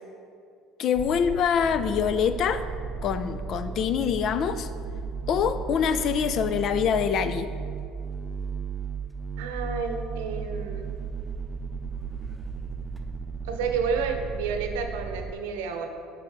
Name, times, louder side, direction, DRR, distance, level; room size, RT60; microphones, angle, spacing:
voice 1, 0.8-2.6 3.0-4.7 5.3-7.5, left 7 dB, 55° left, 12 dB, 0.4 m, -25 dB
sound 1, 0.9-13.6, right 2 dB, ahead, 0.8 m, -47 dB
sound 2, 1.6-15.3, right 5 dB, 40° right, 0.3 m, -35 dB
voice 2, 9.4-10.9 13.4-15.9, right 5 dB, 85° right, 5 dB, 0.8 m, -30 dB
7.5 x 5.3 x 4.8 m, 2.4 s
supercardioid pair, 85°, 0 cm